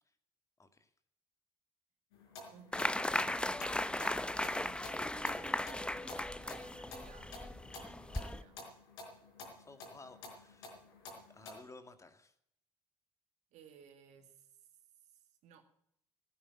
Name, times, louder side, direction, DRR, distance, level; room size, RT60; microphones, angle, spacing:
voice 1, 0.6-0.9 9.5-12.3, left 3 dB, 25° left, 9 dB, 2.1 m, -56 dB
sound 1, 2.1-11.6, left 3 dB, 75° left, 4.4 m, -52 dB
voice 2, 2.5-8.6 13.5-14.7 15.0-15.7, right 8 dB, 65° right, 6 dB, 2.3 m, -60 dB
sound 2, 2.7-8.4, left 1 dB, 5° left, 0.9 m, -37 dB
16.0 x 8.9 x 8.8 m, 0.71 s
hypercardioid pair, 50°, 13 cm